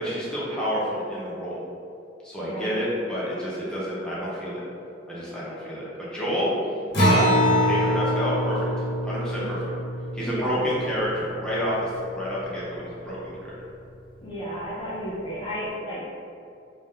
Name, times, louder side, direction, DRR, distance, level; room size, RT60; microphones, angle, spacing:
voice 1, 0.0-1.6 2.2-4.6 5.1-6.5 7.0-7.3 7.6-9.6 10.1-13.5, equal, 5° left, -8 dB, 0.9 m, -29 dB
voice 2, 2.4-2.8 9.4-9.5 10.2-10.7 14.2-16.0, equal, 25° left, -8 dB, 0.5 m, -33 dB
Acoustic guitar, 6.9-11.8, equal, 60° left, 1.1 m, -24 dB
3.5 x 2.7 x 3.7 m, 2.5 s
head